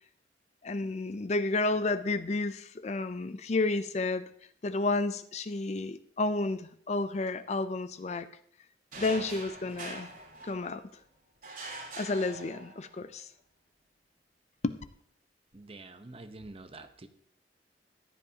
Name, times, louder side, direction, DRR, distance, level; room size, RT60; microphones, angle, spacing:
voice 1, 0.6-4.2 4.6-8.3 9.0-10.1 10.4-10.8 12.0-13.3 14.6-14.8, left 2 dB, 40° left, 12 dB, 0.5 m, -31 dB
sound 1, 8.9-10.9 11.4-13.0, right 2 dB, 50° right, 4.6 m, -43 dB
voice 2, 15.5-17.1, right 2 dB, 30° right, 8 dB, 0.8 m, -47 dB
14.5 x 10.0 x 2.8 m, 0.63 s
head